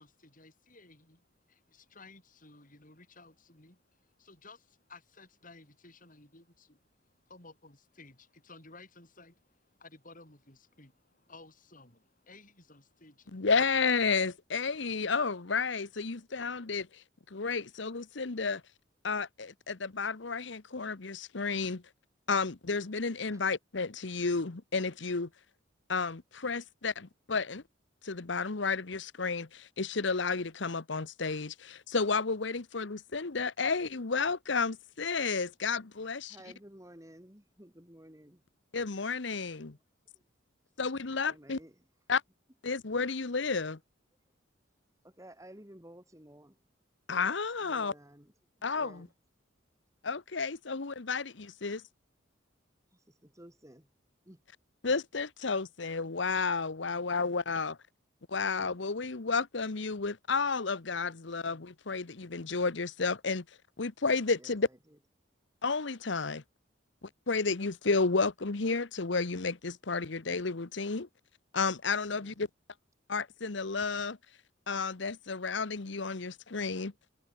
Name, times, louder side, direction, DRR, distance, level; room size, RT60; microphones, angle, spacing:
voice 1, 0.0-13.5, left 3 dB, 40° left, 7.4 m, -56 dB
voice 2, 13.3-16.9 17.3-18.6 19.0-21.8 22.3-25.3 25.9-27.6 28.0-36.4 38.7-39.8 40.8-41.6 42.1-42.2 42.6-43.8 47.1-47.9 48.6-49.1 50.0-51.8 54.8-57.8 58.3-63.4 63.8-64.7 65.6-66.4 67.0-71.1 71.5-72.5 73.1-74.2 74.7-76.9, left 4 dB, 65° left, 1.0 m, -32 dB
voice 3, 36.3-38.4 41.3-41.7 45.0-46.5 47.6-48.3 48.7-49.1 53.2-53.9 54.3-54.4 64.4-64.5 72.2-72.3, right 1 dB, 15° right, 3.6 m, -53 dB
head